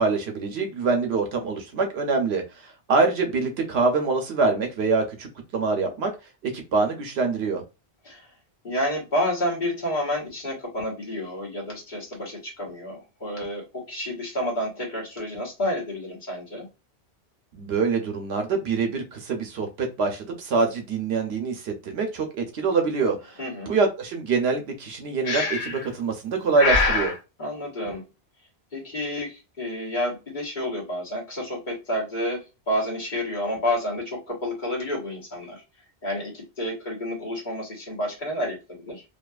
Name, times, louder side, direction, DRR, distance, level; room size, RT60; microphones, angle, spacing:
voice 1, 0.0-6.1 6.4-7.6 17.5-23.4 23.7-27.1, right 4 dB, 75° right, 4 dB, 0.8 m, -25 dB
voice 2, 8.6-16.7 23.4-23.7 27.4-28.0 28.7-35.6 36.0-39.0, left 1 dB, 50° left, -3 dB, 1.2 m, -30 dB
Breathing, 25.2-25.9 26.6-27.2, left 3 dB, 75° left, 0.9 m, -23 dB
2.6 x 2.3 x 2.2 m, 0.28 s
omnidirectional pair, 1.1 m